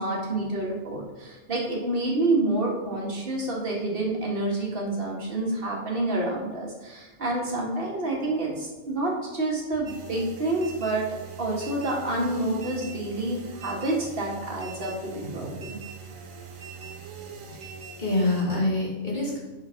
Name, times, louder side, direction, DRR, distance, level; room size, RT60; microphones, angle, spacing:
voice 1, 0.0-11.1 11.4-15.8, right 2 dB, 45° right, -2 dB, 2.0 m, -28 dB
sound 1, 9.9-18.4, right 6 dB, 85° right, 1.4 m, -42 dB
voice 2, 17.5-19.4, left 2 dB, 35° left, -5 dB, 2.9 m, -27 dB
7.9 x 5.1 x 5.8 m, 1.2 s
omnidirectional pair, 1.4 m